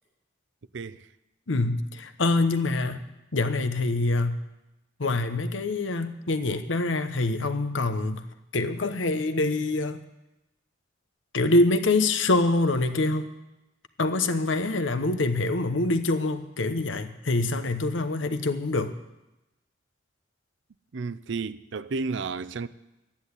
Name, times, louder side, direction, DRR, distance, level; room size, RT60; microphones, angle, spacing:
voice 1, 0.7-1.1 20.9-22.7, right 4 dB, 65° right, 0.5 m, -32 dB
voice 2, 1.5-3.0 3.3-4.4 5.0-8.2 8.5-10.0 11.3-13.3 14.0-18.9, left 2 dB, 75° left, 1.0 m, -25 dB
12.5 x 10.0 x 8.2 m
head